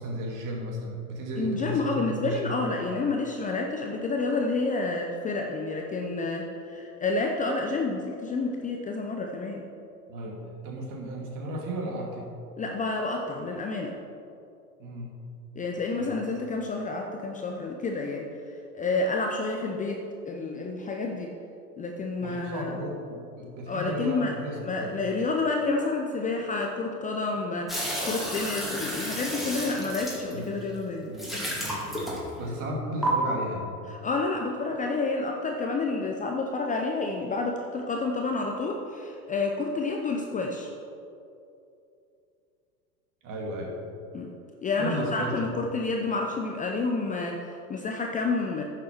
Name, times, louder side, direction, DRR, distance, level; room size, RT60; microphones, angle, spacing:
voice 1, 0.0-2.6 10.1-12.3 14.8-15.2 15.9-16.1 22.2-24.9 30.3-30.5 31.1-33.7 43.2-43.7 44.8-45.5, right 1 dB, 40° right, -1 dB, 2.4 m, -35 dB
voice 2, 1.4-9.6 12.6-14.0 15.6-18.3 18.7-21.3 21.8-22.8 23.7-31.1 34.0-40.7 44.1-44.3 44.6-48.6, left 3 dB, 15° left, 2 dB, 0.7 m, -29 dB
sound 1, 27.7-30.6 31.1-32.5 33.0-33.1, equal, ahead, 2.4 m, -32 dB
10.5 x 6.8 x 4.6 m, 2.6 s
hypercardioid pair, 95°, 46 cm